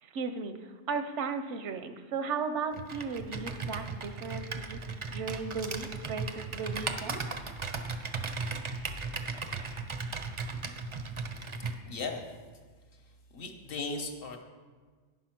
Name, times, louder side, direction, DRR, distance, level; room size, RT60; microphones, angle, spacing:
voice 1, 0.0-4.8 5.1-7.2, right 5 dB, 85° right, 8 dB, 1.0 m, -36 dB
Computer keyboard, 2.7-11.8, right 4 dB, 40° right, 0.4 m, -37 dB
voice 2, 11.8-12.3 12.9-14.4, left 3 dB, 55° left, 4 dB, 1.0 m, -38 dB
9.3 x 5.6 x 5.9 m, 1.5 s
omnidirectional pair, 1.2 m